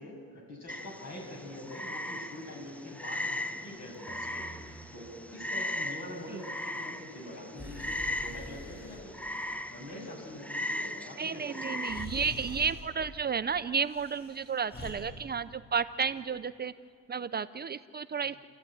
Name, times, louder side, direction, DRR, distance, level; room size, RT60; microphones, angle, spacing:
voice 1, 0.0-4.5 4.9-9.0 9.7-11.9 18.2-18.4, left 1 dB, 60° left, 0 dB, 7.5 m, -44 dB
Frog, 0.7-12.1, left 1 dB, 5° left, 0.8 m, -38 dB
Breathing, 3.9-4.9 7.5-9.0 11.2-11.3 11.8-12.9 13.8-14.9, left 1 dB, 35° left, 7.4 m, -45 dB
voice 2, 11.2-16.7 17.1-18.4, right 6 dB, 35° right, 13 dB, 0.5 m, -32 dB
30.0 x 14.0 x 9.0 m, 2.2 s
cardioid pair, 90°, 30 cm